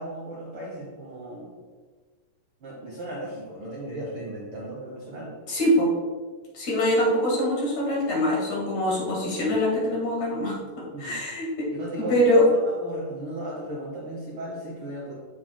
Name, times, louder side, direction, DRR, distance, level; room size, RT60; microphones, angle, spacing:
voice 1, 0.0-1.6 2.6-5.6 10.9-11.2 11.7-15.1, right 1 dB, 55° right, -5 dB, 1.5 m, -35 dB
voice 2, 5.5-5.9 6.5-10.5 11.0-11.7 12.1-12.4, equal, 60° left, -5 dB, 2.9 m, -23 dB
7.3 x 7.0 x 2.2 m, 1.4 s
omnidirectional pair, 3.8 m